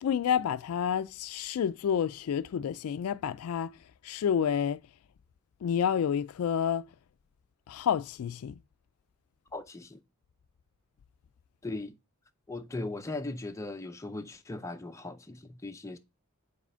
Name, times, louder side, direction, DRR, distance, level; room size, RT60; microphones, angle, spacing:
voice 1, 0.0-3.7 4.0-4.8 5.6-6.9 7.7-8.5, left 8 dB, 75° left, 0.3 m, -29 dB
voice 2, 9.5-10.0 11.6-11.9 12.5-16.0, left 2 dB, 15° left, 0.5 m, -38 dB
5.0 x 4.2 x 5.4 m
head